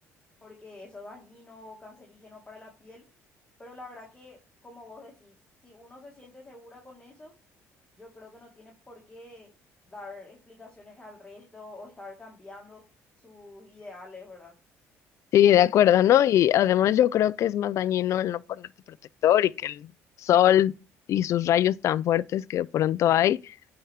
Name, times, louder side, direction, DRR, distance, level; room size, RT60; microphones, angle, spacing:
voice 1, 0.4-3.0 3.6-5.4 5.6-7.3 8.0-9.5 9.9-12.8 13.2-14.5, left 2 dB, 15° left, 2.2 m, -47 dB
voice 2, 15.3-18.7 19.2-19.9 20.2-20.7 21.1-23.5, left 11 dB, 60° left, 0.3 m, -21 dB
9.2 x 4.4 x 3.5 m
cardioid pair, 95°, 6 cm